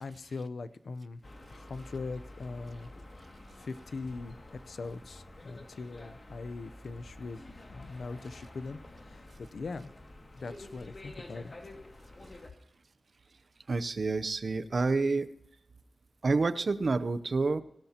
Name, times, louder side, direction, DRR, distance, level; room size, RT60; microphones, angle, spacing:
voice 1, 0.0-1.2 1.5-2.9 3.6-4.4 4.7-7.4 7.7-9.9 10.3-11.5, left 3 dB, 80° left, 14 dB, 0.6 m, -41 dB
sound 1, 1.2-12.5, left 1 dB, 45° left, 2.1 m, -49 dB
voice 2, 13.7-15.3 16.2-17.6, right 3 dB, 60° right, 13 dB, 0.7 m, -28 dB
17.5 x 13.0 x 2.9 m, 0.75 s
wide cardioid pair, 80°, 0 cm